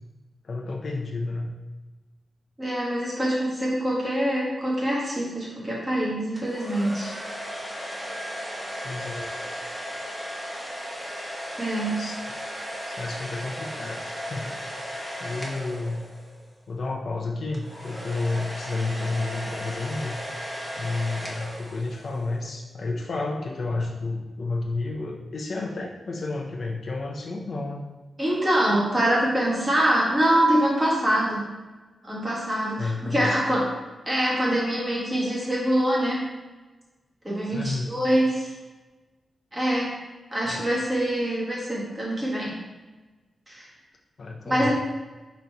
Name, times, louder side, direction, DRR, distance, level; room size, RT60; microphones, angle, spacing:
voice 1, 0.4-1.5 8.8-9.5 12.0-12.2 12.9-14.6 15.2-16.0 16.7-20.2 20.8-27.8 32.8-33.4 37.5-37.9 40.5-40.6 44.2-44.7, left 3 dB, 55° left, 0 dB, 0.5 m, -31 dB
voice 2, 2.6-7.1 11.6-12.0 28.2-31.5 32.0-33.7 34.0-36.3 37.2-38.5 39.5-39.9 40.3-42.6 43.5-43.7 44.4-44.7, right 1 dB, 20° right, -7 dB, 1.5 m, -24 dB
sound 1, 6.4-16.5 17.5-22.3, equal, ahead, 0.9 m, -36 dB
3.9 x 2.9 x 4.5 m, 1.2 s
wide cardioid pair, 110°, 0 cm